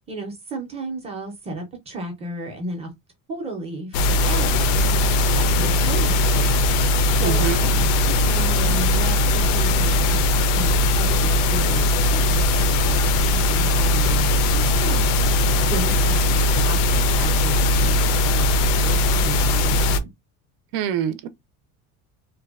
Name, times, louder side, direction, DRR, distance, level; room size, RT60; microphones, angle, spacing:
voice 1, 0.1-2.9 3.3-18.5 18.8-20.1, right 2 dB, 20° right, 0.5 m, -34 dB
sound 1, 3.9-20.0, left 1 dB, 80° left, 0.5 m, -19 dB
voice 2, 7.2-7.6 20.7-21.3, right 10 dB, 90° right, 0.6 m, -25 dB
2.6 x 2.2 x 2.3 m
cardioid pair, 175°, 36 cm